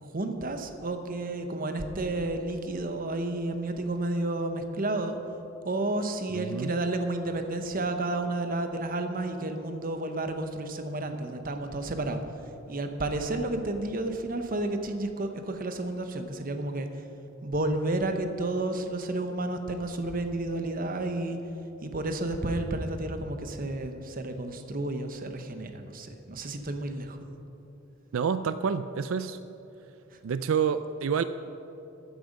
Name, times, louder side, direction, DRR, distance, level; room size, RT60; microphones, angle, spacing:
voice 1, 0.0-5.2 5.6-12.2 12.7-17.0 17.4-21.4 21.8-27.2 30.1-30.2, right 2 dB, 45° right, 7 dB, 1.0 m, -31 dB
voice 2, 6.3-6.7 28.1-29.4 30.2-31.2, right 6 dB, 90° right, 12 dB, 0.4 m, -28 dB
14.5 x 9.3 x 5.3 m, 2.9 s
head